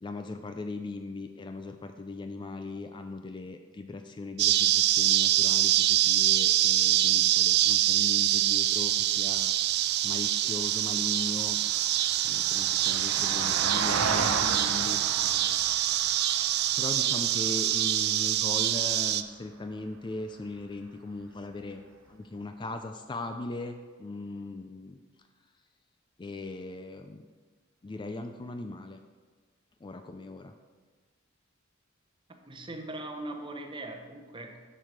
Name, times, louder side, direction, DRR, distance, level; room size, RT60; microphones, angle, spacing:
voice 1, 0.0-11.6 12.2-15.6 16.8-21.8 22.1-25.0 26.2-27.3 27.8-29.0 29.8-30.5, left 2 dB, 25° left, 6 dB, 0.4 m, -39 dB
sound 1, 4.4-19.2, right 13 dB, 50° right, 0.4 m, -25 dB
Vehicle, 8.7-19.1 21.4-21.5, right 4 dB, 80° right, 0.8 m, -36 dB
voice 2, 32.5-34.6, right 2 dB, 25° right, 3 dB, 0.9 m, -40 dB
7.6 x 6.4 x 5.1 m, 1.4 s
head